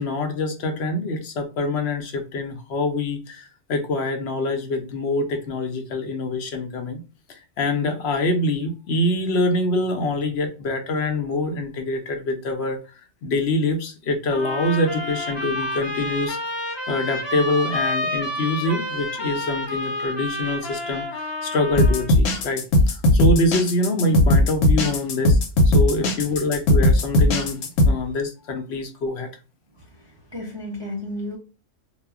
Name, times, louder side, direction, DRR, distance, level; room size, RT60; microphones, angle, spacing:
voice 1, 0.0-7.0 7.3-16.4 16.9-25.4 25.6-29.3, left 2 dB, 65° left, 0.8 m, -25 dB
sound 1, 14.3-22.1, left 1 dB, 25° left, 0.7 m, -29 dB
sound 2, 21.7-27.9, left 1 dB, 85° left, 1.0 m, -17 dB
voice 2, 29.8-31.4, left 1 dB, 45° right, 0.3 m, -34 dB
2.2 x 2.0 x 3.5 m
omnidirectional pair, 1.3 m